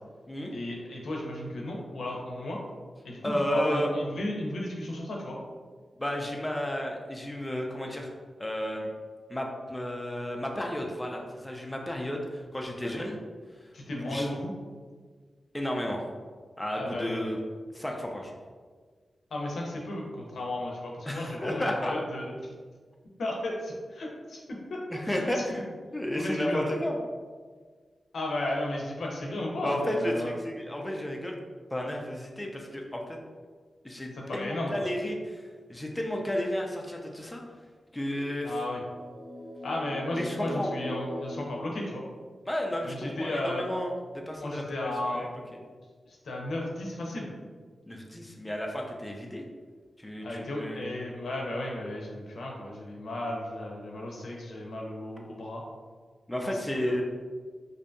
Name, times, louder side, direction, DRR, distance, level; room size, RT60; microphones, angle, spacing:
voice 1, 0.5-2.6 3.0-5.4 12.8-13.0 13.7-14.5 16.8-17.3 19.3-22.3 23.2-24.8 25.1-25.6 26.1-26.7 28.1-30.3 34.1-34.8 38.4-38.8 39.6-42.0 42.8-43.6 44.4-45.3 46.1-47.3 50.2-55.6 56.4-56.9, left 1 dB, 85° left, -2 dB, 0.5 m, -34 dB
voice 2, 3.2-3.9 6.0-8.1 8.4-8.9 9.3-13.2 13.9-14.3 15.5-16.0 16.6-17.4 17.7-18.4 21.1-22.0 24.9-27.0 29.6-31.4 31.7-33.2 33.8-35.4 35.7-37.4 37.9-38.5 40.2-40.7 42.5-44.6 45.0-45.3 47.9-49.4 50.0-50.8 56.3-57.0, left 1 dB, 10° left, 1 dB, 0.3 m, -32 dB
sound 1, 38.7-42.5, left 1 dB, 50° right, 1.3 m, -40 dB
2.6 x 2.2 x 2.5 m, 1.5 s
wide cardioid pair, 85°, 0 cm